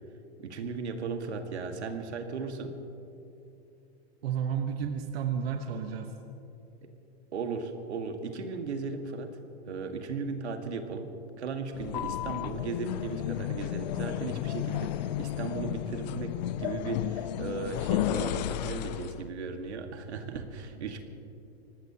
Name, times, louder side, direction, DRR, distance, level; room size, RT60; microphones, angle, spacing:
voice 1, 0.4-2.8 7.3-9.4 9.7-14.9 15.2-21.0, right 4 dB, 90° right, 5 dB, 1.8 m, -36 dB
voice 2, 4.2-6.1 14.5-14.6 20.8-21.0, right 7 dB, 65° right, 5 dB, 1.2 m, -32 dB
sound 1, 11.7-19.2, left 13 dB, 40° left, 0.4 m, -33 dB
24.0 x 19.0 x 2.9 m, 2.8 s
hypercardioid pair, 150°, 33 cm